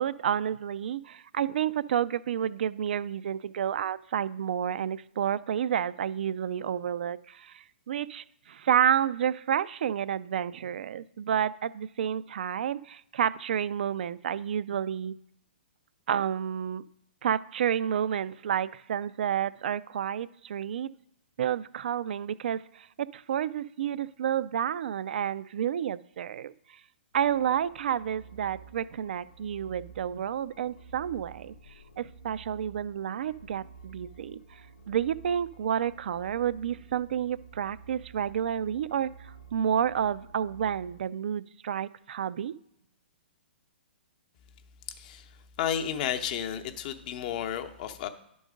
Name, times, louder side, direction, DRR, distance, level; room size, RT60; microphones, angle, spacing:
voice 1, 0.0-15.2 16.1-16.9 17.2-20.9 21.4-26.5 27.1-31.5 32.0-34.4 34.9-39.1 39.5-42.6, right 9 dB, 65° right, 17 dB, 0.4 m, -30 dB
sound 1, 27.1-41.0, right 5 dB, 85° left, 0.7 m, -51 dB
voice 2, 45.0-45.3 45.6-48.1, left 9 dB, 45° left, 7 dB, 0.8 m, -32 dB
10.5 x 3.9 x 5.0 m, 0.77 s
hypercardioid pair, 125°, 6 cm